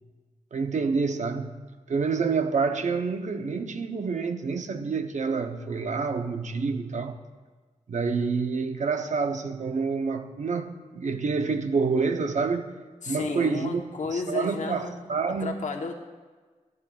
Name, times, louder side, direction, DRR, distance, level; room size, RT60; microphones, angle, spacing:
voice 1, 0.5-7.2 7.9-12.7 13.1-15.5, right 4 dB, 70° right, 6 dB, 0.9 m, -28 dB
voice 2, 13.0-15.0 15.4-16.1, left 4 dB, 70° left, 3 dB, 1.1 m, -32 dB
14.5 x 11.0 x 2.5 m, 1.4 s
cardioid pair, 70°, 13 cm